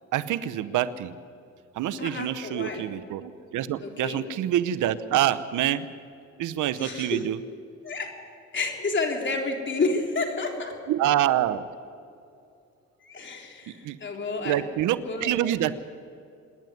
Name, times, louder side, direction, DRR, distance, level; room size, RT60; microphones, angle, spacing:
voice 1, 0.1-1.1 1.7-5.9 6.4-7.4 10.9-11.6 13.8-14.0 14.4-15.8, right 12 dB, 85° right, 14 dB, 0.9 m, -26 dB
voice 2, 2.0-2.8 3.8-4.2 6.8-7.2 7.8-8.1 8.5-10.8 13.0-14.6 15.0-15.3, left 3 dB, 40° left, 2 dB, 3.6 m, -30 dB
26.5 x 10.5 x 9.5 m, 2.5 s
cardioid pair, 90°, 30 cm